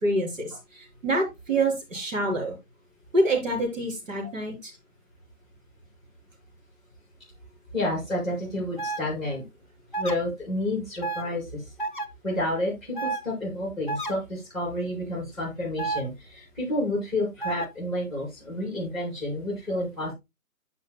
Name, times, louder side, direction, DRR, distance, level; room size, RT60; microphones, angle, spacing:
voice 1, 0.0-2.6 3.1-4.7, right 1 dB, 55° right, 1 dB, 3.9 m, -26 dB
voice 2, 7.7-9.4 10.0-11.6 12.2-20.1, left 1 dB, ahead, -2 dB, 5.4 m, -30 dB
sound 1, 8.8-9.0 9.9-10.1 11.0-11.2 11.8-12.1 12.9-13.2 13.9-14.1 15.8-16.0 17.4-17.7, right 3 dB, 35° left, 0.6 m, -30 dB
15.0 x 5.0 x 2.2 m, 0.22 s
hypercardioid pair, 160°, 46 cm